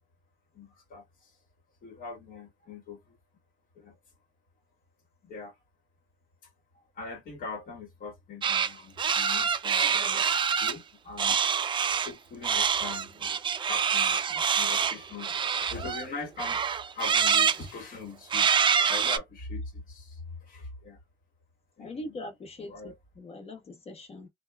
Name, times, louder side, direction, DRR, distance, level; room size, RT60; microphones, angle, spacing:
voice 1, 0.5-1.3 1.8-3.1 3.7-4.0 5.2-5.5 6.9-9.9 10.6-11.4 11.9-16.6 16.9-21.0 21.8-22.2 22.6-23.0, left 4 dB, 55° left, 1.3 m, -42 dB
sound 1, 8.4-8.7 9.0-10.7 11.2-12.1 12.4-16.1 16.4-17.6 18.3-19.2, right 7 dB, 30° right, 0.4 m, -26 dB
voice 2, 9.8-10.3 21.8-24.3, left 2 dB, 35° left, 1.1 m, -42 dB
2.9 x 2.3 x 2.2 m
cardioid pair, 110°, 17 cm